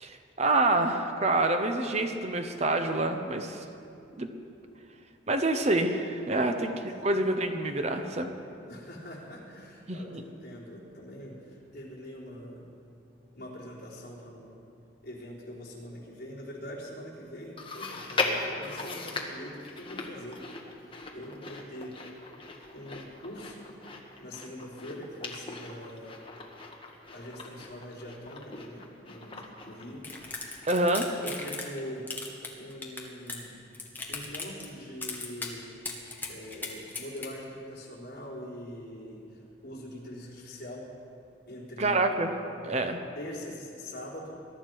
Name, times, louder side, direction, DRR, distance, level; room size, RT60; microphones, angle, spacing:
voice 1, 0.0-3.7 4.2-4.3 5.3-6.7 7.0-8.3 9.9-10.2 30.7-31.1 41.8-42.3 42.6-43.0, right 2 dB, 35° right, 6 dB, 0.8 m, -27 dB
voice 2, 6.4-6.7 8.7-12.7 13.3-14.6 15.0-20.4 20.8-22.0 22.7-23.7 24.2-26.2 27.1-30.0 31.2-32.1 32.6-33.6 34.1-35.7 36.3-40.9 41.5-42.0 43.1-44.4, equal, 55° left, -5 dB, 3.8 m, -43 dB
Chewing mastication, 17.6-31.1 31.4-31.5 32.3-32.4, left 3 dB, 30° left, 1.4 m, -39 dB
sound 1, 30.0-31.8 32.1-33.5 33.7-34.7 35.0-35.5 35.8-37.3, left 3 dB, 10° left, 1.5 m, -37 dB
21.5 x 12.0 x 4.7 m, 2.6 s
head